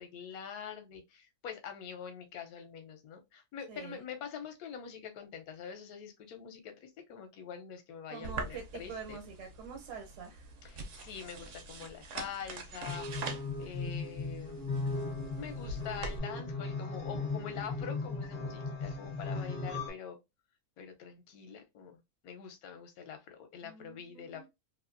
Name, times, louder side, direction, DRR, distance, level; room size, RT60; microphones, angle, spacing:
voice 1, 0.0-9.2 10.6-13.3 13.6-14.6 15.4-20.2 20.8-24.5, left 7 dB, 70° left, 1.1 m, -45 dB
voice 2, 3.7-4.0 8.1-10.5 23.6-24.5, right 6 dB, 80° right, 1.3 m, -46 dB
sound 1, 8.2-16.2, right 3 dB, 65° right, 0.8 m, -44 dB
Broken Piano, 12.9-19.9, left 3 dB, 50° left, 0.8 m, -37 dB
2.9 x 2.5 x 2.4 m
omnidirectional pair, 1.7 m